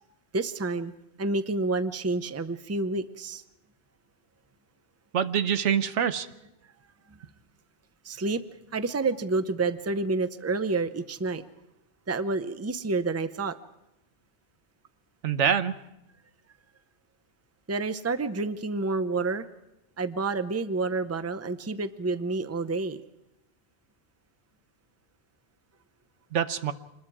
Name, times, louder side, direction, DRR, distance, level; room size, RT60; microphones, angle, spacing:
voice 1, 0.3-0.9 1.2-3.4 7.1-7.2 8.0-8.4 8.7-11.4 12.1-13.6 17.7-19.5 20.0-23.0, right 3 dB, 15° right, 12 dB, 0.6 m, -29 dB
voice 2, 5.1-6.3 15.2-15.7 26.3-26.7, right 8 dB, 85° right, 11 dB, 1.2 m, -25 dB
26.0 x 21.0 x 4.8 m, 0.91 s
omnidirectional pair, 1.2 m